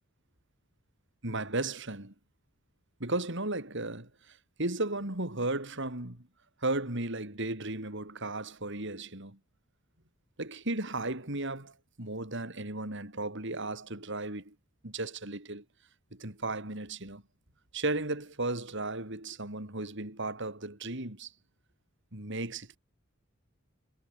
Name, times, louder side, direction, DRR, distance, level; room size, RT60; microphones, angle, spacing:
voice 1, 1.2-2.1 3.0-6.3 6.6-9.4 10.4-14.5 14.8-15.6 16.1-17.2 17.7-21.3 22.1-22.8, right 2 dB, 60° right, 4.8 m, -35 dB
head